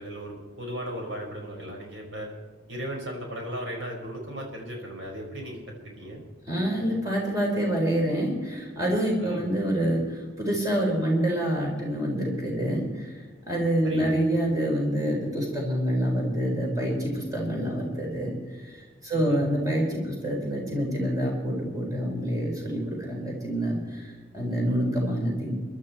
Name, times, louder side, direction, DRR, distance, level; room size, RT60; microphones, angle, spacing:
voice 1, 0.0-2.3 2.7-6.2 9.2-9.4 13.8-14.2 19.1-19.4, equal, 75° right, 0 dB, 5.1 m, -36 dB
voice 2, 6.5-18.3 18.6-25.5, equal, 20° right, -2 dB, 4.5 m, -27 dB
23.0 x 12.5 x 4.4 m, 1.3 s
head